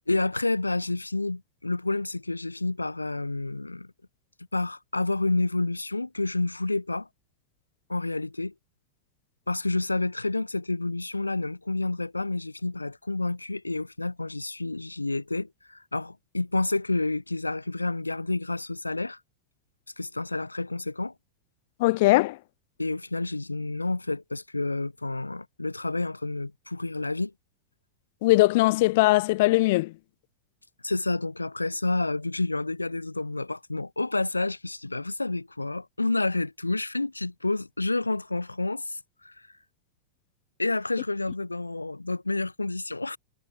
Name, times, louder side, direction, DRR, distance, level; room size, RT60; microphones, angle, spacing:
voice 1, 0.1-3.9 4.5-7.1 7.9-8.5 9.5-19.2 20.0-21.1 22.8-27.3 30.8-39.3 40.6-43.2, left 2 dB, 85° left, 2.8 m, -29 dB
voice 2, 21.8-22.4 28.2-29.9, left 20 dB, 50° left, 0.4 m, -20 dB
figure-of-eight pair, 90°, 0 cm